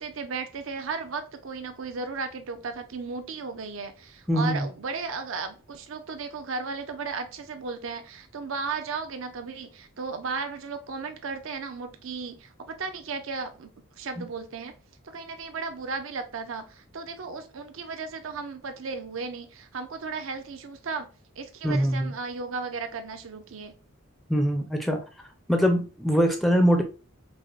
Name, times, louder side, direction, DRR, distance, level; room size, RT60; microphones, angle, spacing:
voice 1, 0.0-13.7 14.0-14.7 15.0-21.1 21.4-23.7, right 4 dB, 70° right, 7 dB, 0.5 m, -35 dB
voice 2, 4.3-4.7 21.6-22.1 24.3-25.0 25.5-26.8, equal, ahead, 4 dB, 0.4 m, -22 dB
4.8 x 2.1 x 2.3 m, 0.34 s
head